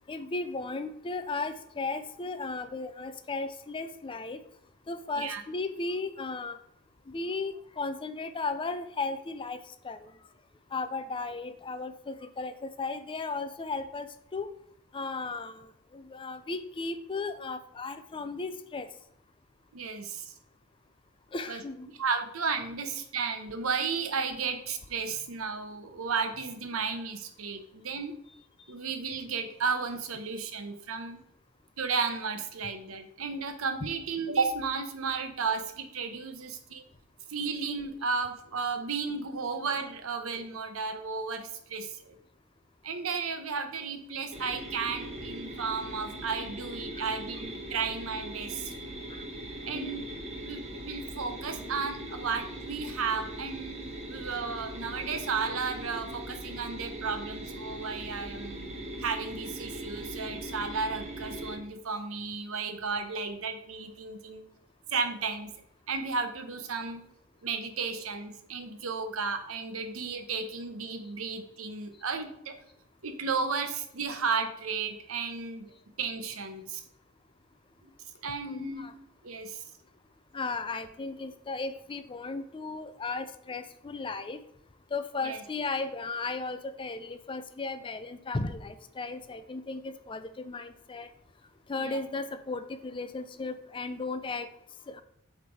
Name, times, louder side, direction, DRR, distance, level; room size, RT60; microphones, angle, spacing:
voice 1, 0.1-4.4 4.9-6.6 7.1-9.6 9.8-10.1 10.7-14.5 14.9-18.9 21.3-21.9 47.0-47.1 49.1-49.3 49.7-50.0 78.4-78.9 80.3-84.4 84.9-91.1 91.7-94.5 94.9-95.0, left 3 dB, 25° left, 11 dB, 0.4 m, -35 dB
voice 2, 19.7-20.3 21.5-21.6 22.0-28.1 28.7-31.2 31.8-36.8 37.3-42.2 42.8-48.7 49.6-50.0 50.4-58.7 59.0-64.4 64.9-65.5 65.9-67.0 67.4-72.5 73.0-75.7 76.0-76.8 77.8-77.9 78.2-78.9 79.2-79.6 85.2-85.4 91.8-92.0, right 5 dB, 70° right, 8 dB, 0.8 m, -33 dB
sound 1, 44.3-61.6, right 1 dB, 30° right, 1.1 m, -40 dB
7.8 x 3.4 x 4.7 m, 0.74 s
head